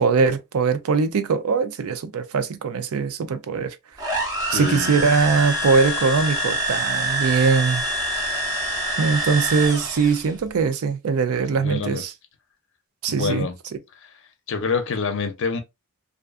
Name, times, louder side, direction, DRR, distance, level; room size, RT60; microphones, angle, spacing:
voice 1, 0.0-3.8 4.5-7.8 9.0-12.1 13.0-13.5, right 5 dB, 90° right, 0.4 m, -21 dB
sound 1, 4.0-10.3, right 1 dB, 15° right, 0.7 m, -26 dB
voice 2, 4.4-5.0 11.5-12.0 13.1-13.6 14.0-14.1 14.5-15.6, left 5 dB, 60° left, 0.5 m, -26 dB
2.5 x 2.3 x 2.4 m
head